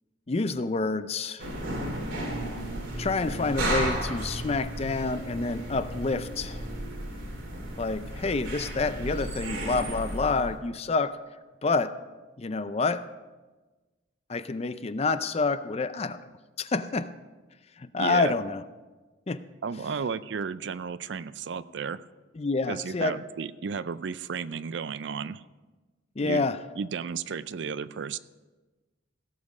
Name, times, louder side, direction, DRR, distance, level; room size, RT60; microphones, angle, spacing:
voice 1, 0.3-1.5 3.0-6.6 7.8-11.2 11.6-11.9 12.4-13.0 14.3-16.3 16.6-17.1 17.8-18.6 19.3-19.4 22.4-23.2 26.2-26.6, left 3 dB, 30° left, 13 dB, 0.4 m, -28 dB
sound 1, 1.4-10.6, right 1 dB, 90° right, 2.6 m, -34 dB
voice 2, 18.0-18.3 19.6-22.0 22.7-25.4 26.2-26.5 26.8-28.2, right 6 dB, 65° right, 16 dB, 0.4 m, -33 dB
17.0 x 7.4 x 4.9 m, 1.2 s
head